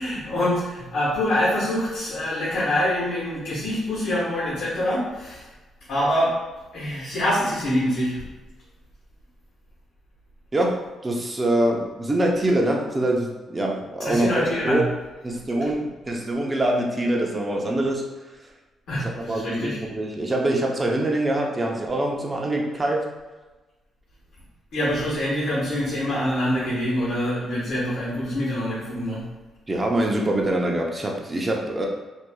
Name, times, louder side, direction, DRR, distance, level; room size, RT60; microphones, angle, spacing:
voice 1, 0.0-5.4 5.9-6.3 6.7-8.1 14.0-14.8 18.9-19.8 24.7-29.2, left 1 dB, 65° left, -8 dB, 1.3 m, -25 dB
voice 2, 10.5-14.8 15.2-18.0 19.0-23.1 29.7-31.9, right 1 dB, 25° right, 0 dB, 0.7 m, -24 dB
4.3 x 2.6 x 2.3 m, 1.2 s
cardioid pair, 90°, 0 cm